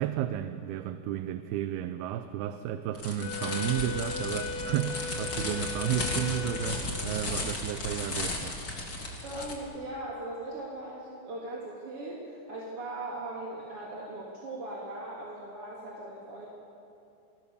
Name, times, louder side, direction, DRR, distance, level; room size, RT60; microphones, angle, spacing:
voice 1, 0.0-8.6, right 11 dB, 80° right, 9 dB, 2.6 m, -32 dB
sound 1, 2.9-9.6, left 2 dB, 30° left, 3.1 m, -35 dB
Wind instrument woodwind instrument, 3.2-7.0, left 5 dB, 90° left, 3.4 m, -38 dB
voice 2, 9.2-16.5, right 1 dB, 40° right, -5 dB, 3.5 m, -39 dB
29.5 x 20.0 x 7.0 m, 2.6 s
omnidirectional pair, 4.4 m